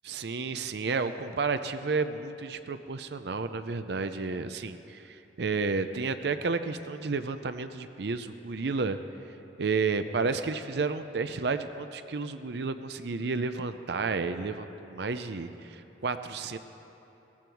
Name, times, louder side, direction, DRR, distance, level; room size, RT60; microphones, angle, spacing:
voice 1, 0.0-9.0 9.6-16.6, right 4 dB, 70° right, 10 dB, 0.5 m, -31 dB
17.5 x 14.5 x 4.6 m, 3.0 s
head